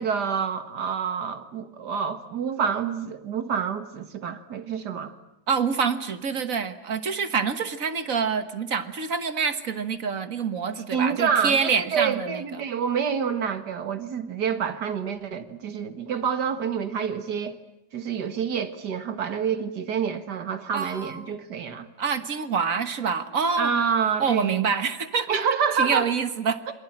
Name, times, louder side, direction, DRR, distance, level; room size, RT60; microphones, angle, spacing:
voice 1, 0.0-5.1 10.9-17.6 17.9-21.9 23.6-24.7 25.3-26.1 26.7-26.8, right 7 dB, 80° right, 2.2 m, -27 dB
voice 2, 5.5-12.4 20.7-21.3 22.0-23.7 24.2-25.4 25.7-26.7, right 6 dB, 55° right, 1.8 m, -26 dB
28.0 x 23.5 x 8.9 m
omnidirectional pair, 1.8 m